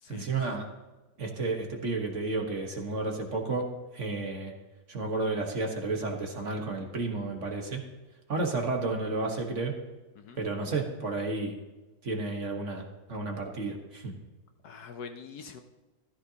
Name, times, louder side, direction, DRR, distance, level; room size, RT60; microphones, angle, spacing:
voice 1, 0.1-0.7 1.2-3.7 3.9-4.5 4.9-7.8 8.3-9.8 10.4-11.6 12.0-12.8 13.1-14.1, right 3 dB, 45° right, 2 dB, 1.5 m, -32 dB
voice 2, 14.6-15.6, left 5 dB, 65° left, 7 dB, 1.1 m, -44 dB
14.5 x 13.0 x 2.8 m, 1.1 s
omnidirectional pair, 1.9 m